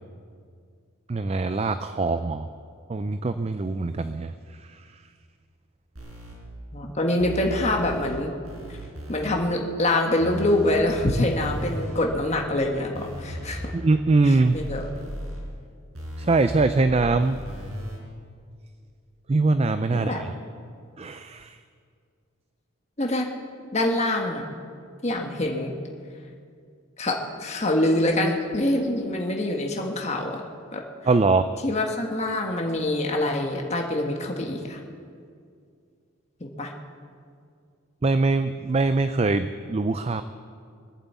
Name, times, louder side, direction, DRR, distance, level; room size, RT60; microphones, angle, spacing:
voice 1, 1.1-2.5 2.9-5.0 13.7-14.6 16.2-17.4 19.3-20.3 21.0-21.6 31.1-31.4 38.0-40.2, right 3 dB, 30° right, 11 dB, 0.4 m, -23 dB
sound 1, 6.0-6.3 7.2-8.2 8.4-9.4 10.2-12.4 12.9-14.0 14.4-15.4 15.9-18.0, equal, 75° right, 5.3 m, -37 dB
voice 2, 6.7-8.3 9.1-13.7 14.2-14.9 19.9-20.2 23.0-23.3 23.7-24.5 25.0-25.7 27.0-30.4 30.7-30.8 31.6-34.8 36.4-36.7, left 1 dB, 30° left, 1 dB, 1.4 m, -25 dB
21.5 x 8.1 x 8.2 m, 2.2 s
head